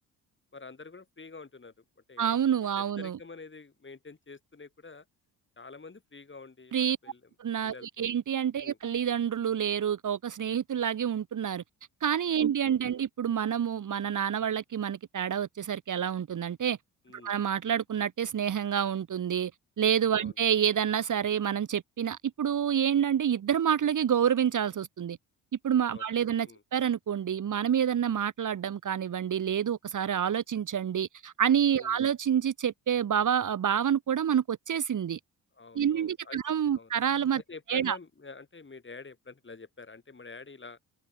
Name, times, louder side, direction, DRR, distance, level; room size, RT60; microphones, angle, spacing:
voice 1, 0.5-1.7 2.1-5.1 5.6-7.2 7.6-8.1 8.6-8.8 12.4-12.5 12.8-13.0 17.1-17.3 20.1-20.3 25.9-26.1 26.5-26.6 31.8-32.0 35.5-36.4 36.7-36.9 37.5-40.8, left 4 dB, 25° left, 7.1 m, -47 dB
voice 2, 2.2-3.2 6.7-7.0 7.4-11.6 12.0-16.8 17.2-19.5 19.8-25.2 25.6-35.2 35.7-37.4 37.7-38.0, right 9 dB, 45° right, 1.6 m, -28 dB
supercardioid pair, 65°, 42 cm